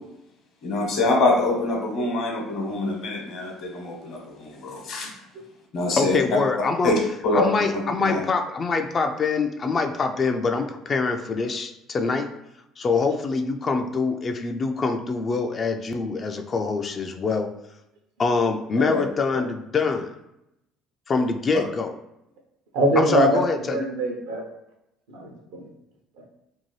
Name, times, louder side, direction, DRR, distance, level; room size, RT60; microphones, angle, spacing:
voice 1, 0.6-5.1 5.7-6.2 6.8-6.9 7.2-7.5 8.0-8.2 18.8-19.0 19.3-19.4, left 2 dB, 60° left, -1 dB, 1.0 m, -25 dB
voice 2, 6.0-6.9 7.3-12.3 12.8-17.5 18.2-20.1 21.1-22.0 23.0-23.8, left 4 dB, 40° left, 6 dB, 0.3 m, -24 dB
voice 3, 22.7-24.4 25.1-25.6, right 1 dB, 85° right, 0 dB, 0.7 m, -23 dB
2.7 x 2.2 x 3.1 m, 0.85 s
supercardioid pair, 80°, 0 cm